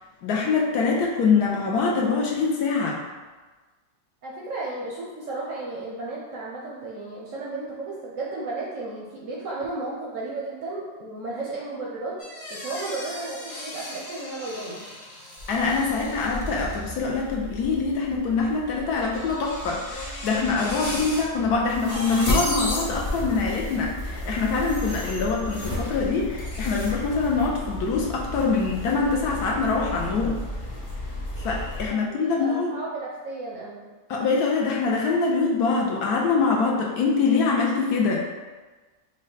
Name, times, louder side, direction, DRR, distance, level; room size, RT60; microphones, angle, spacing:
voice 1, 0.2-3.0 15.5-30.4 31.4-32.8 34.1-38.3, left 4 dB, 70° left, -2 dB, 1.0 m, -24 dB
voice 2, 4.2-14.9 31.9-33.9, right 2 dB, 65° right, -4 dB, 0.8 m, -34 dB
sound 1, 12.2-17.0 19.0-21.2, left 1 dB, 45° left, 0.8 m, -38 dB
sound 2, 15.4-31.9, left 1 dB, 25° left, 0.3 m, -33 dB
5.1 x 2.2 x 3.9 m, 1.3 s
omnidirectional pair, 1.9 m